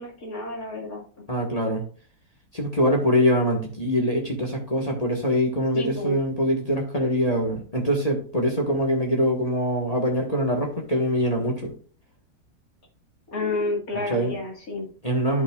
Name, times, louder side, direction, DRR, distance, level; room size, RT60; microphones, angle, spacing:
voice 1, 0.0-1.2 5.7-6.2 13.3-14.9, left 2 dB, 55° left, -1 dB, 2.5 m, -30 dB
voice 2, 1.3-1.8 2.5-11.7 14.1-14.3 15.0-15.4, equal, 25° left, 0 dB, 1.3 m, -23 dB
11.0 x 5.9 x 2.4 m, 0.42 s
omnidirectional pair, 1.9 m